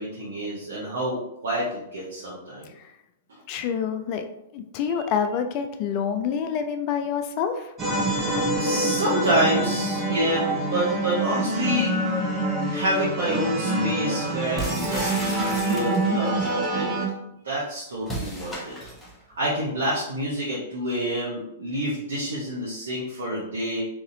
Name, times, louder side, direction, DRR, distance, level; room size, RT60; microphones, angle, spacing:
voice 1, 0.0-2.7 8.6-11.9 12.7-16.9 17.4-18.8 19.4-23.8, right 1 dB, 65° right, -8 dB, 1.0 m, -28 dB
voice 2, 3.5-4.3 4.5-7.7, left 7 dB, 40° left, 6 dB, 0.4 m, -27 dB
sound 1, 7.8-17.1, right 1 dB, 25° right, 0.7 m, -26 dB
sound 2, 14.6-16.3 18.0-19.2, right 1 dB, 5° left, 0.9 m, -33 dB
4.0 x 2.9 x 2.7 m, 0.83 s
figure-of-eight pair, 105°, 0 cm